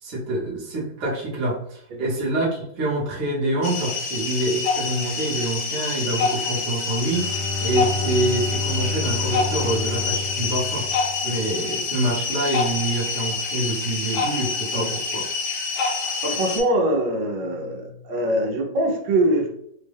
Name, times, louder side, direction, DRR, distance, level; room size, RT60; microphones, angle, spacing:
voice 1, 0.0-15.3, right 1 dB, 45° right, -4 dB, 1.1 m, -26 dB
sound 1, 3.6-16.6, left 4 dB, 70° left, 1.3 m, -27 dB
Bowed string instrument, 7.0-11.7, left 2 dB, 30° left, 0.8 m, -30 dB
voice 2, 16.2-19.5, right 1 dB, 80° right, 1 dB, 1.5 m, -23 dB
3.5 x 2.1 x 3.4 m, 0.72 s
omnidirectional pair, 2.1 m